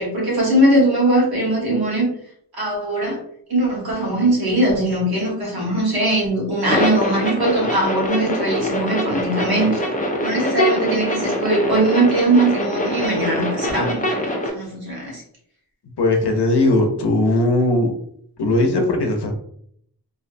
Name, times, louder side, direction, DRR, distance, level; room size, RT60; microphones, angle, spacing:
voice 1, 0.0-2.1 2.5-3.2 3.5-9.8 10.2-15.2, right 1 dB, 60° right, -3 dB, 1.1 m, -20 dB
sound 1, 6.7-14.5, equal, 20° left, 0.4 m, -23 dB
voice 2, 16.0-17.9 18.4-19.3, left 2 dB, 70° left, 3 dB, 0.6 m, -18 dB
2.6 x 2.0 x 2.6 m, 0.67 s
wide cardioid pair, 110°, 41 cm